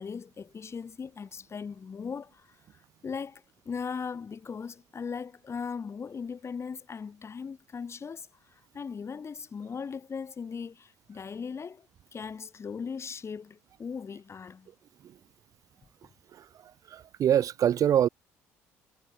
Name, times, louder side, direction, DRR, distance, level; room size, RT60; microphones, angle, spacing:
voice 1, 0.0-2.5 2.7-14.7, left 6 dB, 40° left, 5.2 m, -39 dB
voice 2, 16.9-18.1, right 10 dB, 55° right, 0.8 m, -24 dB
hypercardioid pair, 55°, 7 cm